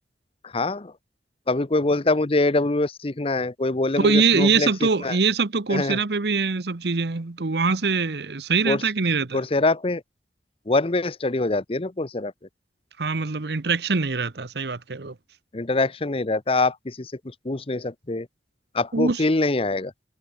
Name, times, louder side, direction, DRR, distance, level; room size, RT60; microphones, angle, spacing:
voice 1, 0.4-0.9 1.5-4.7 5.0-5.2 5.7-6.0 8.6-8.8 9.3-10.0 10.7-12.3 15.5-17.1 17.4-18.3 18.7-19.9, left 2 dB, 35° left, 0.8 m, -24 dB
voice 2, 4.0-9.4 13.0-15.1 18.9-19.2, right 4 dB, 65° right, 0.9 m, -23 dB
head